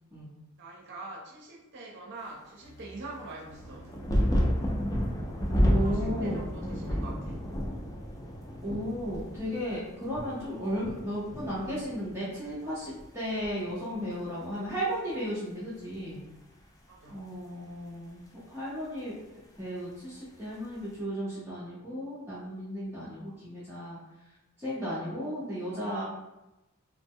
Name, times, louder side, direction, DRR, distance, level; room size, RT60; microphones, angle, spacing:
voice 1, 0.6-3.9 5.6-7.4 16.9-17.2, right 2 dB, 55° right, -3 dB, 0.6 m, -44 dB
sound 1, 2.6-7.6, right 1 dB, 80° left, 0.7 m, -49 dB
sound 2, 3.5-12.6 12.8-13.7 14.7-14.8, equal, 15° left, 0.4 m, -31 dB
voice 2, 5.7-6.4 8.6-16.2 17.1-18.2 18.5-19.1 19.6-24.0 24.6-26.0, equal, 10° right, -11 dB, 0.7 m, -34 dB
2.9 x 2.0 x 3.6 m, 0.97 s
head